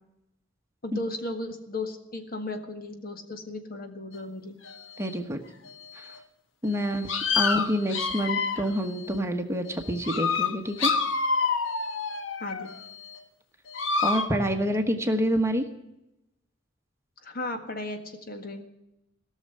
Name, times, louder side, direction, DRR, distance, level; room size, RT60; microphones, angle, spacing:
voice 1, 0.8-4.6 12.4-12.7 17.2-18.0 18.3-18.6, left 2 dB, 50° left, 6 dB, 1.7 m, -35 dB
sound 1, 4.6-4.7 5.7-5.8 6.7-6.8 7.1-8.8 9.7-9.8 10.0-12.8 13.7-14.3, left 5 dB, 80° left, 1.2 m, -27 dB
voice 2, 5.0-5.4 5.9-6.0 6.6-7.1 7.3-10.9 14.0-15.7, equal, 15° right, 5 dB, 1.1 m, -27 dB
17.5 x 6.6 x 9.9 m, 0.89 s
head